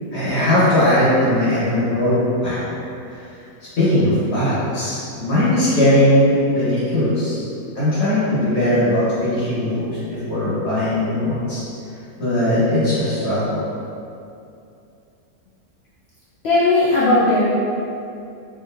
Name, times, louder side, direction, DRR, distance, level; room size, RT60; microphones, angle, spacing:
voice 1, 0.1-2.7 3.8-7.4 7.7-11.6 12.2-13.6, left 1 dB, 45° left, -10 dB, 1.5 m, -19 dB
voice 2, 16.4-17.5, left 2 dB, 90° left, -7 dB, 0.5 m, -16 dB
4.6 x 2.9 x 2.7 m, 2.6 s
omnidirectional pair, 1.7 m